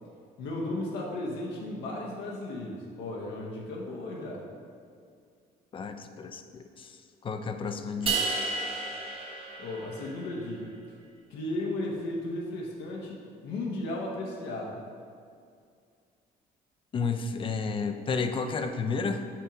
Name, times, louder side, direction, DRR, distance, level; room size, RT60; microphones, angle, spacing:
voice 1, 0.4-4.4 9.6-10.7 11.3-13.2 13.4-14.8, left 1 dB, 85° left, -2 dB, 0.9 m, -35 dB
voice 2, 5.7-8.3 16.9-19.2, left 4 dB, 30° left, 7 dB, 0.4 m, -32 dB
sound 1, 8.1-10.4, right 4 dB, 35° right, 0.8 m, -32 dB
5.9 x 4.6 x 3.8 m, 2.3 s
cardioid pair, 110°, 17 cm